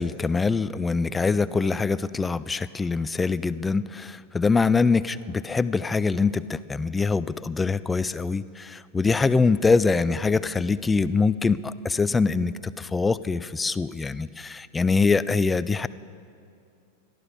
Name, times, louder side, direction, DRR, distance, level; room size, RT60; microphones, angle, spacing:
voice 1, 0.0-15.9, left 4 dB, 10° left, 17 dB, 0.4 m, -24 dB
21.0 x 13.5 x 5.0 m, 2.4 s
figure-of-eight pair, 90°, 0 cm